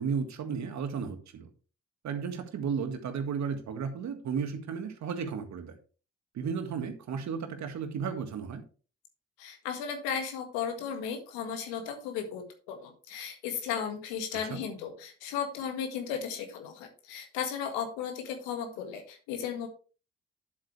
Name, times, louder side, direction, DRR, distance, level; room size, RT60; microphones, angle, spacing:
voice 1, 0.0-1.5 2.0-5.7 6.3-8.6 14.5-14.6, right 6 dB, 65° right, 1.8 m, -34 dB
voice 2, 9.4-19.7, left 7 dB, 80° left, 1.8 m, -35 dB
9.7 x 7.8 x 3.3 m
hypercardioid pair, 45°, 31 cm